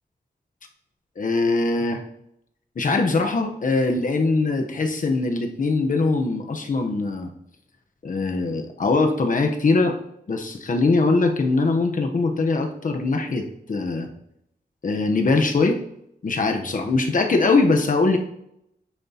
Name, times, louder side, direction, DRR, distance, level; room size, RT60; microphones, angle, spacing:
voice 1, 1.2-2.0 2.8-7.3 8.0-10.0 10.3-14.1 14.8-15.8 16.2-18.2, left 3 dB, 50° left, 4 dB, 1.0 m, -22 dB
9.4 x 7.2 x 2.9 m, 0.78 s
wide cardioid pair, 130°, 17 cm